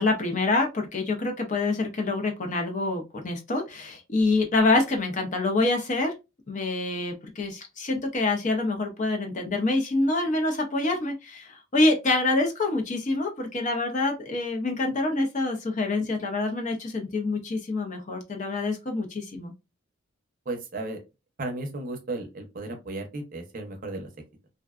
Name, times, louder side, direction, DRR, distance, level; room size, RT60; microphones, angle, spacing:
voice 1, 0.0-6.1 6.5-19.5, left 2 dB, 35° left, 4 dB, 0.5 m, -26 dB
voice 2, 20.5-21.0 21.4-24.1, right 2 dB, 40° right, 3 dB, 0.6 m, -34 dB
2.5 x 2.2 x 2.3 m, 0.25 s
head